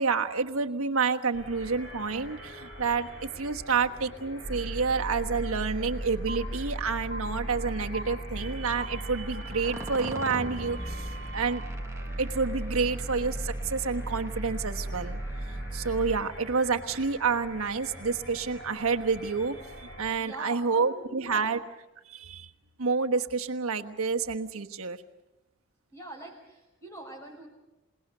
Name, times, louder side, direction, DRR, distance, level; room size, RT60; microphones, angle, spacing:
voice 1, 0.0-11.6 12.2-15.2 15.7-21.6 22.1-22.5 22.8-25.0, right 5 dB, 85° right, 5 dB, 1.3 m, -29 dB
sound 1, 1.3-20.1, equal, 50° left, 7.0 m, -45 dB
sound 2, 4.4-16.2, right 1 dB, 15° right, 0.9 m, -36 dB
sound 3, 6.3-6.4 7.1-7.2 7.9-8.0 8.8-8.9 9.5-11.6, right 1 dB, 40° right, 5.1 m, -42 dB
voice 2, 20.2-21.6 25.9-27.5, right 2 dB, 15° left, 1 dB, 6.3 m, -43 dB
27.5 x 18.5 x 6.7 m, 0.99 s
head